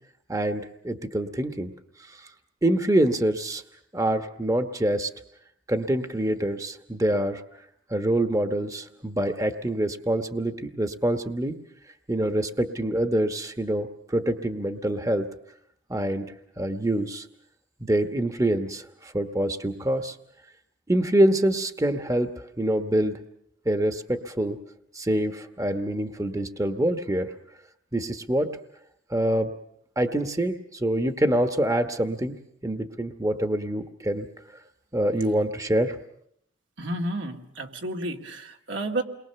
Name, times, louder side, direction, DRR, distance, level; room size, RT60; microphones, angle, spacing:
voice 1, 0.3-1.7 2.1-2.2 2.6-3.6 3.9-5.1 5.7-7.4 7.9-11.6 12.1-15.2 15.9-16.3 16.6-17.3 17.8-20.2 20.9-23.2 23.6-24.6 24.9-27.3 27.9-28.5 29.1-29.5 30.0-32.3 32.6-34.3 34.9-36.0, right 1 dB, 20° right, 8 dB, 1.2 m, -25 dB
voice 2, 36.8-39.0, right 1 dB, 80° right, 2 dB, 2.5 m, -31 dB
29.0 x 22.5 x 6.9 m, 0.71 s
head